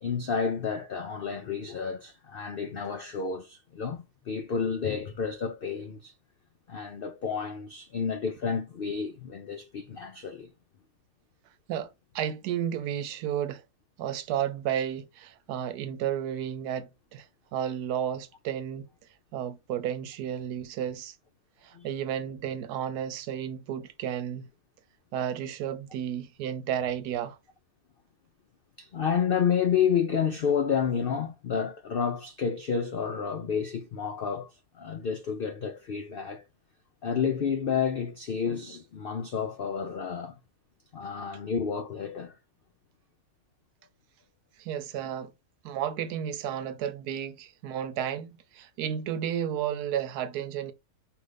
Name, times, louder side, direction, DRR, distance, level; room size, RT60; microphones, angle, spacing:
voice 1, 0.0-6.1 6.7-10.5 21.7-21.9 28.8-34.5 34.7-36.4 37.0-40.4 40.9-42.4, left 6 dB, 80° left, 0.5 m, -30 dB
voice 2, 12.1-13.6 14.0-17.3 17.5-18.9 19.3-21.2 21.6-24.5 25.1-27.4 44.6-45.3 45.6-50.7, right 9 dB, 90° right, 1.2 m, -32 dB
5.0 x 2.6 x 3.3 m
omnidirectional pair, 1.6 m